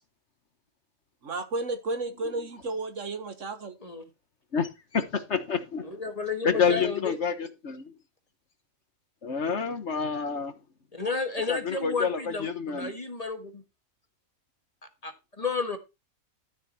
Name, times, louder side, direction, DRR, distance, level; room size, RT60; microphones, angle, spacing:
voice 1, 1.2-3.8, right 2 dB, 60° right, 1.7 m, -32 dB
voice 2, 4.5-5.9 6.4-7.9 9.2-10.5 11.5-12.9, left 6 dB, 55° left, 1.5 m, -28 dB
voice 3, 5.8-7.1 10.9-13.6 15.0-15.8, left 4 dB, 25° left, 1.6 m, -32 dB
12.5 x 7.5 x 4.3 m
omnidirectional pair, 1.5 m